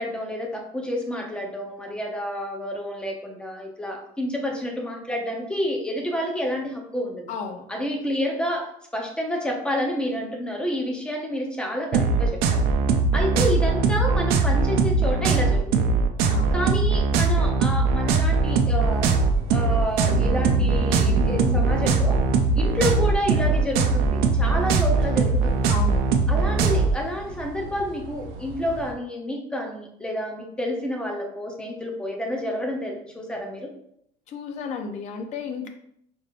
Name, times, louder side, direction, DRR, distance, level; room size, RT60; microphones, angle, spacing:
voice 1, 0.0-7.2 7.7-12.6 13.1-15.9 16.5-19.1 19.5-22.2 22.5-25.8 26.3-33.7, equal, 5° left, 0 dB, 0.7 m, -29 dB
voice 2, 7.3-7.7 16.3-16.6 25.6-26.1 34.3-35.7, left 5 dB, 45° left, 5 dB, 0.6 m, -33 dB
sound 1, 11.9-26.9, right 4 dB, 65° right, 0.5 m, -21 dB
sound 2, 18.4-28.9, right 2 dB, 90° right, 0.8 m, -35 dB
5.1 x 3.4 x 2.5 m, 0.70 s
cardioid pair, 155°, 17 cm